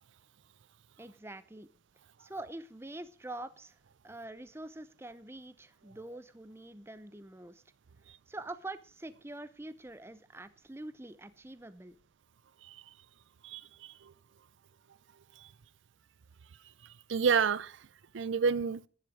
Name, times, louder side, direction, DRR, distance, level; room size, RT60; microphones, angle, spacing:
voice 1, 1.0-1.7 2.2-3.8 4.0-7.6 8.3-12.0, right 2 dB, 15° right, 0.6 m, -45 dB
voice 2, 13.4-14.1 17.1-17.8 18.1-18.8, right 6 dB, 75° right, 0.5 m, -29 dB
10.5 x 9.9 x 5.0 m
head